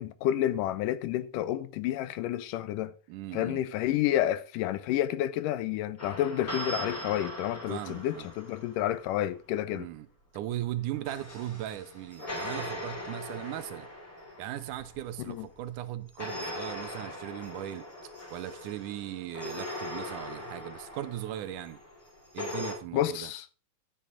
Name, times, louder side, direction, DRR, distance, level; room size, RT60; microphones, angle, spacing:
voice 1, 0.0-2.9 3.3-9.9 15.3-15.5 22.9-23.5, left 12 dB, 80° left, 2.2 m, -30 dB
voice 2, 3.1-3.6 7.7-8.3 9.7-10.1 10.3-13.9 14.4-21.8 22.3-23.3, right 13 dB, 75° right, 2.1 m, -38 dB
sound 1, 6.0-9.2 10.7-15.6 16.2-22.7, left 1 dB, 25° left, 4.1 m, -40 dB
12.5 x 9.3 x 3.8 m
omnidirectional pair, 3.9 m